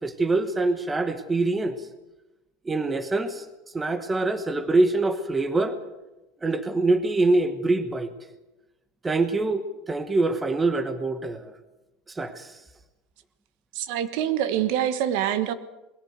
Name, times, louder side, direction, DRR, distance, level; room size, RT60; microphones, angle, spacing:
voice 1, 0.0-1.8 2.6-3.4 3.7-5.8 6.4-8.1 9.0-11.5 12.1-12.5, right 2 dB, 10° right, 11 dB, 1.1 m, -24 dB
voice 2, 13.7-15.5, right 10 dB, 60° right, 12 dB, 1.3 m, -25 dB
21.0 x 16.0 x 8.1 m, 1.0 s
cardioid pair, 165°, 0 cm